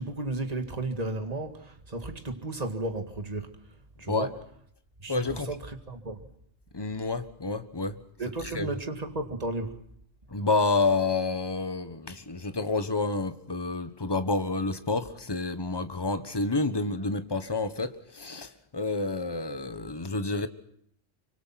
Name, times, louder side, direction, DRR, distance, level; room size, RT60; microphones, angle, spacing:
voice 1, 0.0-3.5 4.0-4.3 5.0-6.2 8.2-9.8, right 2 dB, 30° right, 2.1 m, -34 dB
voice 2, 5.1-5.5 6.7-8.0 8.5-8.7 10.3-20.5, left 3 dB, 20° left, 1.3 m, -29 dB
25.5 x 25.0 x 5.9 m
omnidirectional pair, 1.3 m